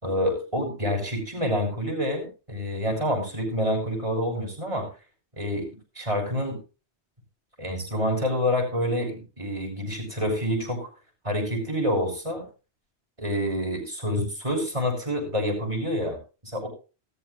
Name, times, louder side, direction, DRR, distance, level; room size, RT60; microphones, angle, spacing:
voice 1, 0.0-4.9 5.4-5.7 5.9-6.6 7.6-10.9 11.2-12.5 13.2-16.2 16.4-16.7, equal, 30° right, 2 dB, 6.4 m, -27 dB
19.0 x 14.0 x 2.7 m, 0.33 s
omnidirectional pair, 1.1 m